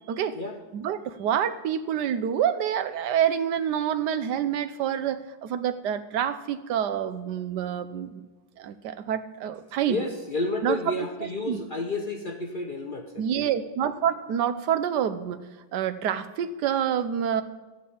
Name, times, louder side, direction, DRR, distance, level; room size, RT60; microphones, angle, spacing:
voice 1, 0.7-8.2 8.6-10.0 10.6-10.8 11.5-11.6 13.2-15.4 15.7-17.4, right 9 dB, 70° right, 12 dB, 1.2 m, -27 dB
voice 2, 9.9-13.5, left 2 dB, 40° left, 3 dB, 0.7 m, -31 dB
14.5 x 5.2 x 8.5 m, 1.2 s
omnidirectional pair, 2.0 m